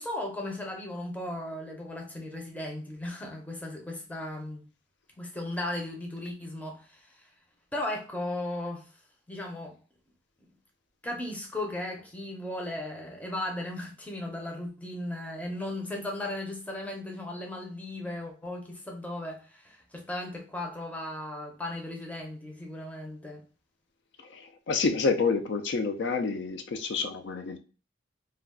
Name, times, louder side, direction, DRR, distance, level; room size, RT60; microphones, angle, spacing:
voice 1, 0.0-4.6 5.2-7.3 7.7-8.9 9.3-9.8 11.0-23.4, left 1 dB, 10° left, 0.5 m, -36 dB
voice 2, 24.3-27.6, left 4 dB, 65° left, 0.3 m, -28 dB
2.3 x 2.3 x 3.5 m
head